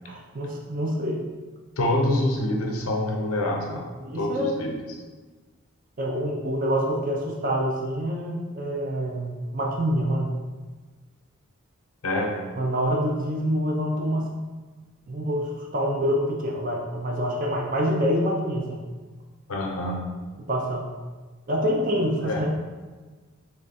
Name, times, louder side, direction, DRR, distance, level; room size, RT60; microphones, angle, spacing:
voice 1, 0.0-1.2 1.9-2.0 4.0-4.6 6.0-10.3 12.6-14.3 15.1-18.8 20.5-20.9 21.5-22.5, equal, 40° right, 0 dB, 0.5 m, -26 dB
voice 2, 1.8-3.9 4.1-4.7 12.0-12.4 19.5-20.0 22.2-22.5, left 1 dB, 85° left, 1 dB, 0.8 m, -26 dB
3.6 x 3.2 x 4.1 m, 1.3 s
head